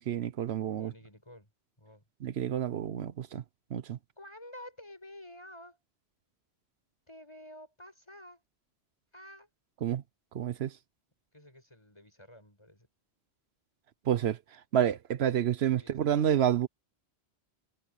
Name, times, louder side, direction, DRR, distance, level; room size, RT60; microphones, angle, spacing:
voice 1, 0.0-0.9 2.2-3.4 3.7-4.0 9.8-10.0 10.3-10.7 14.1-14.4 14.7-16.7, right 10 dB, 75° right, 1.0 m, -29 dB
voice 2, 0.8-1.5 1.8-2.0 4.2-5.8 7.1-8.4 9.1-9.5 11.3-12.9 15.8-16.6, left 1 dB, 25° left, 7.0 m, -51 dB
omnidirectional pair, 1.1 m